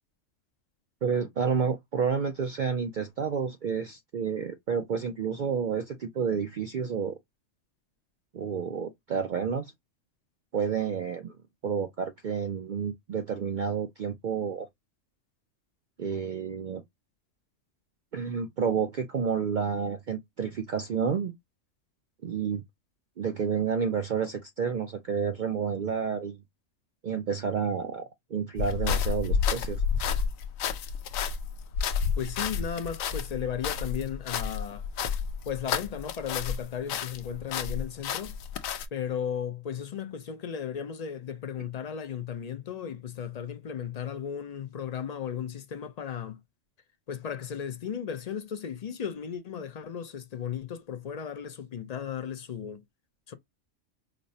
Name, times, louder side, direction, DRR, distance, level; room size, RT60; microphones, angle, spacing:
voice 1, 1.0-7.2 8.3-9.7 10.5-11.3 11.6-14.7 16.0-16.8 18.1-21.3 22.2-22.6 23.2-26.4 27.0-28.0 28.3-29.8, right 6 dB, 65° right, 0.4 m, -30 dB
sound 1, 28.6-36.6 36.9-38.9, left 6 dB, 85° left, 1.0 m, -30 dB
voice 2, 32.2-34.9 35.5-38.3 38.9-46.4 47.1-52.8 53.3-53.4, left 8 dB, 55° left, 0.4 m, -35 dB
5.2 x 2.0 x 2.6 m
omnidirectional pair, 1.4 m